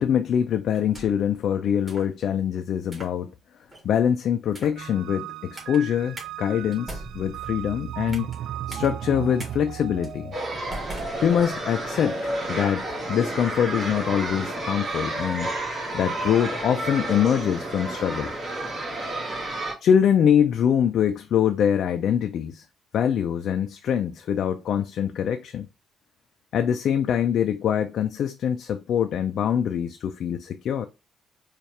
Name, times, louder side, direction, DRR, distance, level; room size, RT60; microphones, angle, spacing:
voice 1, 0.0-3.3 3.8-8.3 8.7-10.3 11.2-15.5 15.9-18.3 19.8-22.6 22.9-25.7 26.5-30.9, left 9 dB, 70° left, 0.4 m, -24 dB
sound 1, 0.7-1.3 1.9-2.1 2.8-3.2 3.7-4.0 4.5-4.9 5.6-5.8 6.2-6.3 6.7-8.4 8.7-8.9 9.4-9.5 10.0-10.2 10.7-11.8, right 2 dB, 20° right, 1.7 m, -41 dB
sound 2, 4.8-12.1, right 11 dB, 75° right, 0.3 m, -36 dB
sound 3, 10.3-19.7, right 1 dB, 45° right, 1.7 m, -31 dB
4.3 x 2.4 x 3.1 m
cardioid pair, 90°, 0 cm